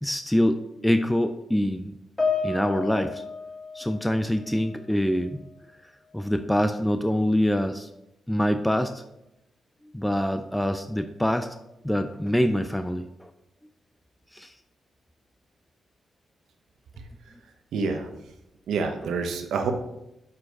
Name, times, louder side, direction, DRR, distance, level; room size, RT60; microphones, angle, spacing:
voice 1, 0.0-1.9 2.4-3.2 3.7-5.4 6.1-7.9 8.3-9.0 9.9-11.5 11.8-13.3 14.3-14.5, equal, 5° left, 8 dB, 0.4 m, -25 dB
Piano, 2.2-4.8 5.1-5.4 6.2-6.3, left 4 dB, 25° left, 1.7 m, -31 dB
voice 2, 17.7-18.1 18.7-19.7, right 4 dB, 85° right, 5 dB, 0.9 m, -27 dB
7.3 x 4.4 x 4.7 m, 0.88 s
cardioid pair, 90°, 0 cm